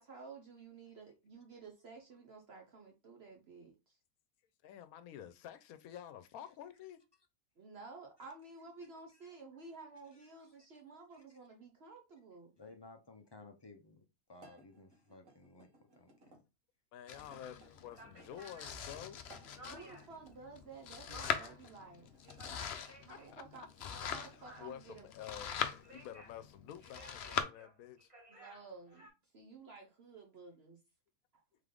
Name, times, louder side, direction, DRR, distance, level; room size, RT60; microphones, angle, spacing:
voice 1, 0.0-4.0 7.6-12.5 19.6-22.1 23.0-23.7 24.0-25.1 28.3-29.1 29.3-30.8, right 4 dB, 50° right, 1.0 m, -53 dB
voice 2, 4.6-7.0 10.4-10.5 16.9-19.2 23.1-23.7 24.6-28.1, left 10 dB, 80° left, 1.1 m, -50 dB
voice 3, 12.6-15.7 16.0-16.4 17.5-17.7 19.3-19.5 20.0-20.1, left 3 dB, 45° left, 0.3 m, -57 dB
sound 1, 14.4-16.4 17.1-18.5 19.2-20.4 21.2-22.6 23.2-24.5, right 2 dB, 70° right, 1.8 m, -62 dB
Domestic sounds home sounds, 17.1-27.4, left 7 dB, 60° left, 0.7 m, -42 dB
sound 2, 17.9-20.2 20.6-21.7 22.1-23.3 23.7-25.0 25.6-26.4 26.8-29.1, equal, 25° right, 1.5 m, -56 dB
3.7 x 3.4 x 3.7 m
omnidirectional pair, 1.5 m